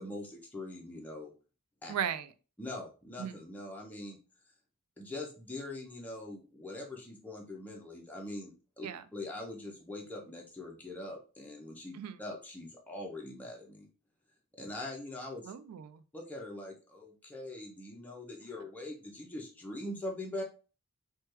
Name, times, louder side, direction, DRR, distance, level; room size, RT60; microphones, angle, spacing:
voice 1, 0.0-1.3 1.8-1.9 2.6-4.2 5.0-8.9 9.1-13.9 14.6-15.5 16.1-20.4, left 1 dB, 5° left, 0.5 m, -42 dB
voice 2, 1.9-2.3 3.2-3.4 8.8-9.0 11.9-12.2 15.4-16.0, right 8 dB, 85° right, 0.3 m, -36 dB
3.2 x 2.2 x 3.0 m
head